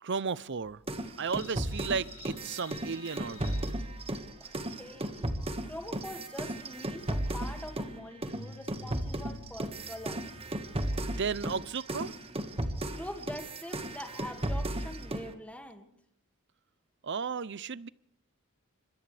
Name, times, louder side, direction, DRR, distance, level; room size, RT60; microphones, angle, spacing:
voice 1, 0.0-0.8 1.2-3.6 11.0-12.1 17.0-17.9, right 5 dB, 55° right, 0.7 m, -34 dB
sound 1, 0.9-7.9 8.2-15.3, right 1 dB, 25° right, 1.7 m, -35 dB
sound 2, 1.3-11.9, left 3 dB, 70° left, 4.8 m, -53 dB
voice 2, 4.4-5.3 5.7-10.3 12.3-12.4 12.9-15.9, left 1 dB, 5° left, 2.2 m, -44 dB
29.0 x 26.0 x 3.4 m
head